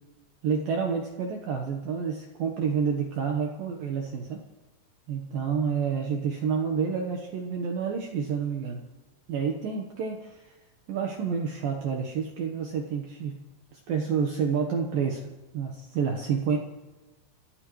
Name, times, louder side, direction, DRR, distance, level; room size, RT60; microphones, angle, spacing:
voice 1, 0.4-4.4 5.1-8.9 9.3-10.6 10.9-13.4 13.7-15.2 15.5-16.6, right 6 dB, 80° right, 2 dB, 2.0 m, -29 dB
29.5 x 14.0 x 3.2 m, 1.1 s
omnidirectional pair, 6.0 m